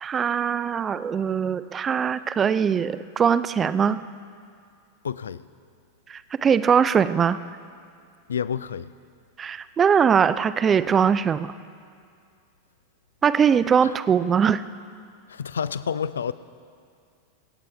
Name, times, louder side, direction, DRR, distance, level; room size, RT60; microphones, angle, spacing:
voice 1, 0.0-4.0 6.1-7.4 9.4-11.5 13.2-14.6, right 7 dB, 20° right, 15 dB, 0.4 m, -21 dB
voice 2, 5.0-5.4 8.3-8.9 13.8-13.9 15.3-16.3, left 7 dB, 70° left, 16 dB, 0.4 m, -29 dB
24.5 x 8.9 x 3.3 m, 2.3 s
figure-of-eight pair, 90°, 0 cm